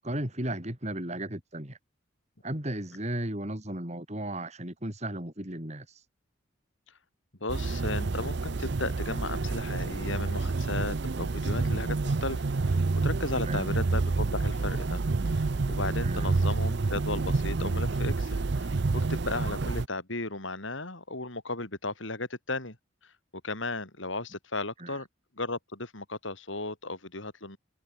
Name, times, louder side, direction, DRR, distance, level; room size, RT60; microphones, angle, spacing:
voice 1, 0.0-1.8 2.4-6.1 13.4-13.6 16.0-16.3 24.8-25.0, right 1 dB, 35° right, 4.1 m, -35 dB
voice 2, 7.4-22.8 23.0-23.1 23.4-25.1 25.3-27.6, left 2 dB, 70° left, 4.6 m, -35 dB
sound 1, 7.5-19.9, right 3 dB, 55° right, 0.6 m, -28 dB
head